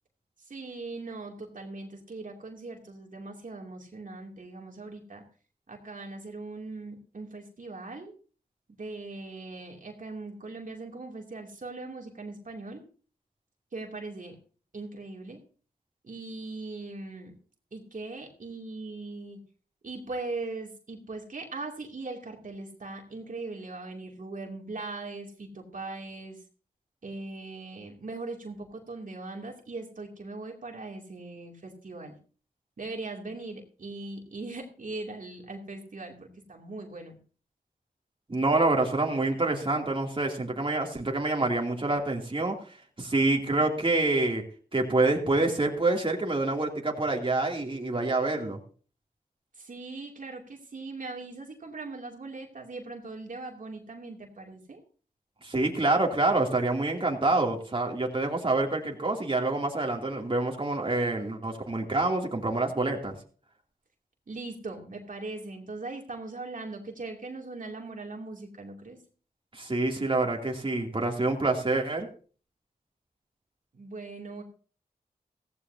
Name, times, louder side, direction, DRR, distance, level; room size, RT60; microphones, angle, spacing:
voice 1, 0.5-5.2 5.7-8.1 8.8-12.9 13.7-14.4 14.7-15.4 16.0-17.3 17.7-19.4 19.8-26.4 27.0-32.1 32.8-37.2 49.6-54.8 64.3-69.0 73.7-74.4, right 3 dB, 60° right, 1 dB, 2.8 m, -40 dB
voice 2, 38.3-42.6 43.0-44.4 44.7-48.6 55.4-63.1 69.5-72.1, right 2 dB, 35° right, 0 dB, 2.8 m, -27 dB
16.0 x 15.5 x 2.8 m, 0.40 s
cardioid pair, 45°, 16 cm